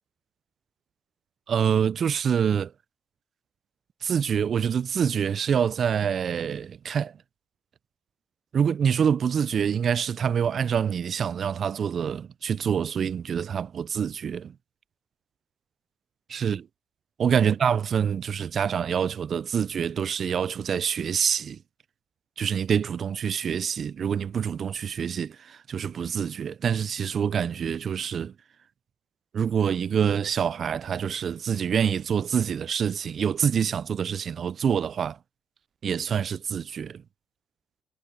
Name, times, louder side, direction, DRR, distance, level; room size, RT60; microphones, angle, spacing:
voice 1, 1.5-2.7 4.0-7.2 8.5-14.5 16.3-16.6 17.2-21.6 22.4-28.3 29.3-35.2 35.8-37.0, right 7 dB, 55° right, 0.4 m, -26 dB
cardioid pair, 90°, 0 cm